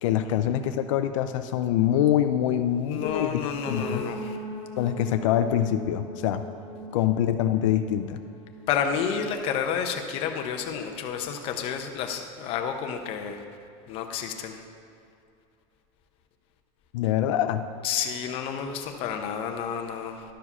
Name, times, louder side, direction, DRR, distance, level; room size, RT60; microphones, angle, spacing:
voice 1, 0.0-3.4 3.7-4.0 4.8-6.4 6.9-8.2 16.9-17.6, left 11 dB, 85° left, 9 dB, 0.5 m, -24 dB
voice 2, 2.7-4.4 6.8-6.9 8.7-13.4 13.9-14.6 17.8-20.2, left 7 dB, 35° left, 4 dB, 0.7 m, -30 dB
sound 1, 3.6-9.5, equal, 15° left, 1.4 m, -39 dB
11.5 x 4.8 x 5.5 m, 2.5 s
supercardioid pair, 170°, 16 cm